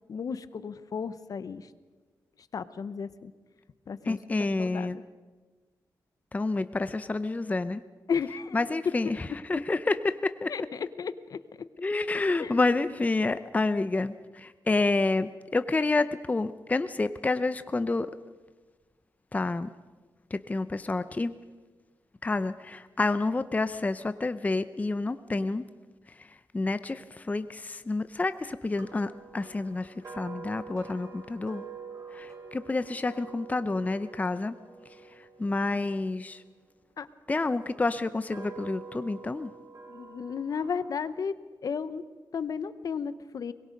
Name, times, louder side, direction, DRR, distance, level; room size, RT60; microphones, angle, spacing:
voice 1, 0.1-1.6 2.5-3.3 3.9-4.2 4.6-4.9 8.1-8.7 10.5-11.4 12.1-12.6 37.0-37.1 39.9-41.3 41.6-42.0 42.3-43.5, left 6 dB, 55° left, 14 dB, 0.9 m, -34 dB
voice 2, 4.1-5.0 6.3-7.8 8.5-10.5 11.8-18.1 19.3-19.7 20.3-21.3 22.2-25.7 26.5-31.6 32.1-34.6 35.4-36.4 37.3-39.5, left 3 dB, 20° left, 12 dB, 0.6 m, -29 dB
sound 1, 28.7-36.9 37.6-41.1, right 5 dB, 50° right, 3.2 m, -47 dB
24.0 x 21.5 x 5.3 m, 1.3 s
cardioid pair, 95°, 7 cm